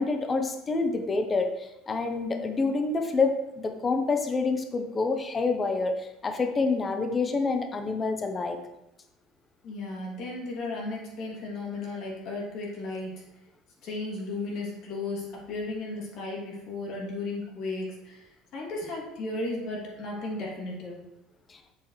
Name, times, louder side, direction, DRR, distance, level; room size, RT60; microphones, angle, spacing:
voice 1, 0.0-8.6 21.5-21.6, left 3 dB, 20° left, 6 dB, 0.8 m, -27 dB
voice 2, 9.6-13.1 13.8-18.2 18.5-21.0, left 2 dB, 55° left, -2 dB, 2.7 m, -35 dB
7.3 x 7.2 x 3.2 m, 0.89 s
cardioid pair, 145°, 0 cm